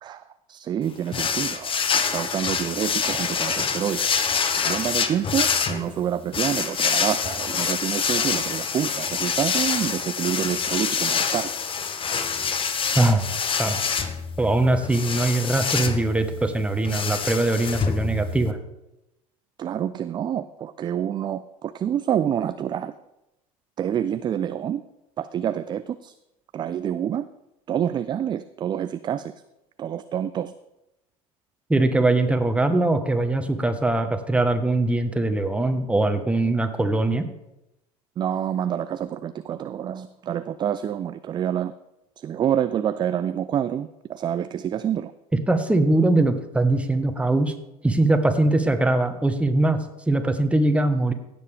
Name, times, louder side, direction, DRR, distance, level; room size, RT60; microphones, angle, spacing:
voice 1, 0.0-11.5 19.6-22.9 23.8-24.8 25.2-26.1 26.5-27.3 27.7-29.3 29.8-30.5 38.2-41.7 42.2-45.1, right 9 dB, 25° right, 13 dB, 0.3 m, -27 dB
sound 1, 1.1-18.5, left 6 dB, 30° left, 0.9 m, -26 dB
voice 2, 14.4-18.6 31.7-37.3 45.5-47.5 47.8-51.1, right 2 dB, 5° right, 7 dB, 1.1 m, -21 dB
16.0 x 7.0 x 3.4 m, 0.91 s
figure-of-eight pair, 75°, 19 cm